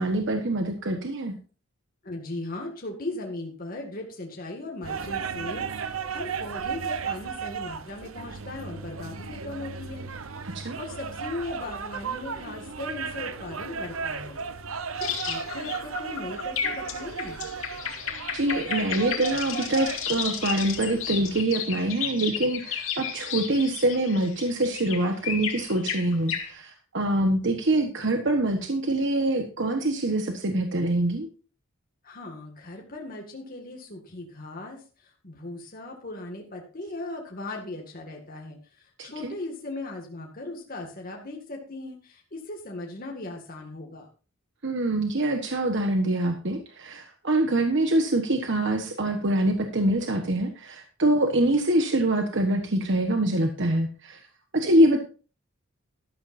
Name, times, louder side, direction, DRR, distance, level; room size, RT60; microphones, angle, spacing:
voice 1, 0.0-1.3 10.5-10.8 18.3-31.3 39.0-39.3 44.6-54.2 54.5-55.0, right 1 dB, 60° right, 5 dB, 1.3 m, -25 dB
voice 2, 2.0-14.4 15.0-17.4 32.0-34.8 35.2-44.1, left 2 dB, 45° left, 0 dB, 2.0 m, -38 dB
sound 1, 4.8-21.4, right 6 dB, 80° right, 0.9 m, -35 dB
sound 2, 15.0-26.5, left 7 dB, 75° left, 2.5 m, -33 dB
13.0 x 12.5 x 2.7 m, 0.36 s
head